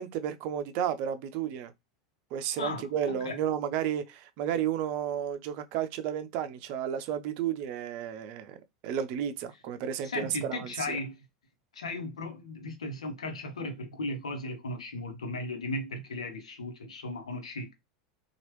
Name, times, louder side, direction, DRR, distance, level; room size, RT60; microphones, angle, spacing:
voice 1, 0.0-1.7 2.3-8.6 8.8-11.0, right 9 dB, 55° right, 0.5 m, -32 dB
voice 2, 2.6-3.4 10.0-11.2 11.7-17.7, left 2 dB, 80° left, 0.9 m, -36 dB
3.0 x 2.4 x 3.0 m
hypercardioid pair, 90°, 3 cm